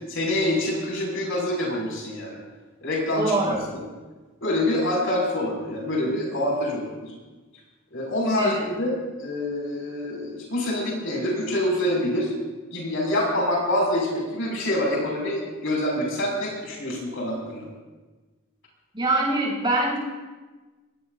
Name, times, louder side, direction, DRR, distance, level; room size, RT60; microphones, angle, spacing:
voice 1, 0.1-2.4 2.8-3.8 4.4-7.1 7.9-12.3 12.7-17.7, left 1 dB, 65° left, -2 dB, 6.2 m, -26 dB
voice 2, 3.2-3.6 8.4-8.6 18.9-20.0, right 2 dB, 25° right, -5 dB, 7.1 m, -23 dB
23.0 x 21.5 x 2.7 m, 1.2 s
head